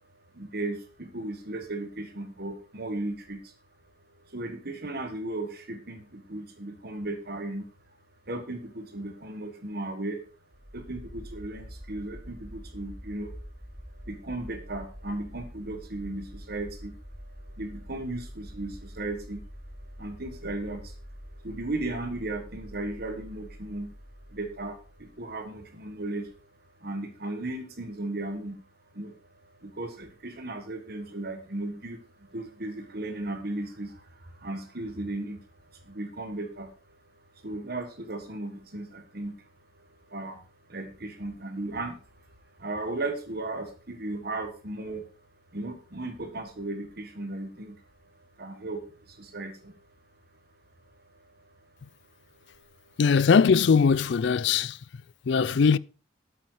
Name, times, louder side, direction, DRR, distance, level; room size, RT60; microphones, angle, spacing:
voice 1, 0.1-3.5 4.1-7.7 8.3-10.2 10.7-13.3 13.9-19.5 19.8-23.9 24.3-26.3 26.6-28.6 28.9-39.5 39.7-40.4 40.7-42.3 42.5-45.0 45.5-49.9 50.9-51.7 52.3-53.0, right 2 dB, 50° right, 1.5 m, -36 dB
sound 1, 10.5-25.3, equal, ahead, 3.9 m, -45 dB
voice 2, 53.0-54.8 55.3-55.8, left 5 dB, 60° left, 0.4 m, -20 dB
8.6 x 8.6 x 4.9 m
head